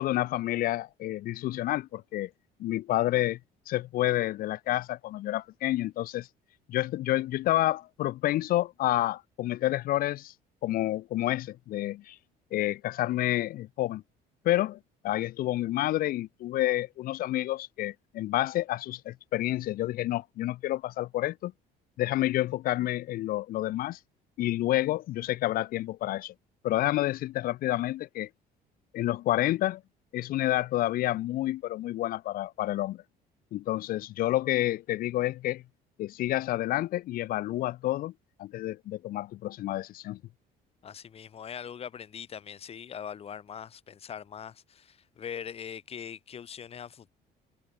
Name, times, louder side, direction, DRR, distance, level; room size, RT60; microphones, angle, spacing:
voice 1, 0.0-2.3 2.6-3.4 3.7-6.3 6.7-10.3 10.6-12.2 12.5-14.0 14.4-21.5 22.0-24.0 24.4-26.3 26.6-28.3 28.9-29.8 30.1-33.0 33.5-35.6 36.0-38.1 38.4-40.2, left 15 dB, 60° left, 0.8 m, -29 dB
voice 2, 40.8-47.1, left 8 dB, 35° left, 5.2 m, -41 dB
cardioid pair, 155°, 17 cm